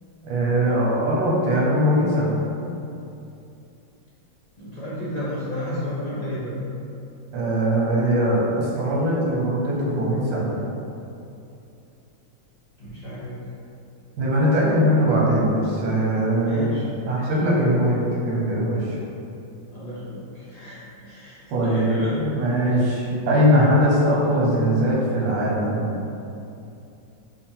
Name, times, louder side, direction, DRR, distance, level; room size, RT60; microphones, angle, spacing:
voice 1, 0.2-2.4 7.3-10.5 14.2-16.8 17.1-19.0 21.5-25.9, equal, 85° right, -5 dB, 1.7 m, -21 dB
voice 2, 4.6-6.5 12.8-13.4 16.4-17.3 17.6-17.8 19.7-22.2, left 1 dB, 45° left, -11 dB, 0.5 m, -32 dB
5.6 x 2.3 x 3.7 m, 2.7 s
omnidirectional pair, 2.0 m